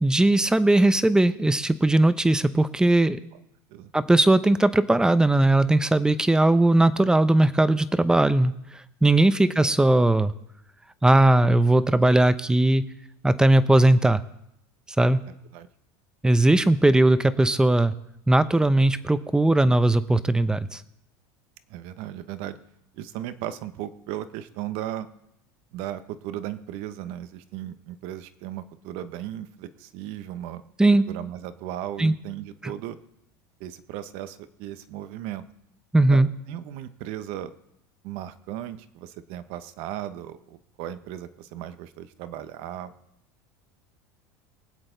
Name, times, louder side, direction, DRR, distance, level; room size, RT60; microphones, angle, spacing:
voice 1, 0.0-3.2 3.9-8.5 9.0-10.3 11.0-12.8 13.2-14.2 15.0-15.2 16.2-17.9 18.3-20.8 30.8-31.0 32.0-32.1 32.6-32.7 35.9-36.3, right 2 dB, 5° right, 13 dB, 0.8 m, -19 dB
voice 2, 15.3-15.7 16.6-16.7 19.4-19.7 21.7-22.5 22.9-25.1 25.7-30.6 31.1-33.0 33.6-35.4 36.1-36.2 36.5-37.5 38.0-42.9, right 12 dB, 65° right, 12 dB, 1.1 m, -36 dB
23.0 x 8.0 x 3.9 m, 0.80 s
supercardioid pair, 105°, 11 cm